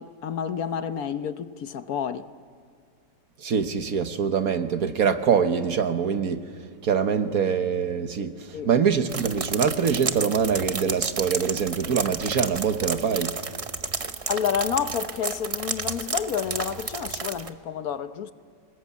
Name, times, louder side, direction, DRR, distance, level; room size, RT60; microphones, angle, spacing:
voice 1, 0.0-2.2 8.5-8.7 14.3-18.3, left 8 dB, 65° left, 1.2 m, -29 dB
voice 2, 3.4-6.4 6.8-13.3, right 6 dB, 60° right, 1.6 m, -24 dB
sound 1, 9.1-17.5, right 4 dB, 30° right, 0.6 m, -31 dB
28.0 x 19.5 x 8.4 m
omnidirectional pair, 1.8 m